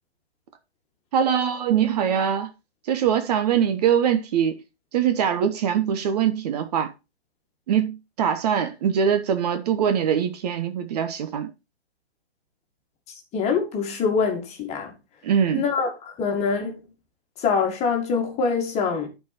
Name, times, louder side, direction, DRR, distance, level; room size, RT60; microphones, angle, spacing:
voice 1, 1.1-2.5 2.9-4.6 4.9-6.9 7.7-11.5 15.2-15.6, right 8 dB, 40° right, 1.0 m, -22 dB
voice 2, 13.3-14.9 15.5-16.8 17.4-19.1, left 5 dB, 20° left, 2.0 m, -24 dB
11.5 x 4.7 x 4.2 m
figure-of-eight pair, 130°, 32 cm